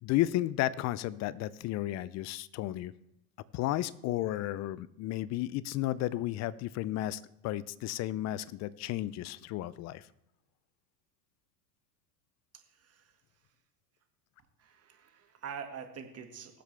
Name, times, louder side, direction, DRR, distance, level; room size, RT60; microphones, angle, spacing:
voice 1, 0.0-2.9 3.5-10.1, left 14 dB, 35° left, 20 dB, 0.5 m, -33 dB
voice 2, 12.7-13.2 14.6-16.6, right 7 dB, 30° right, 5 dB, 1.9 m, -45 dB
19.0 x 7.7 x 3.4 m, 0.83 s
hypercardioid pair, 95°, 49 cm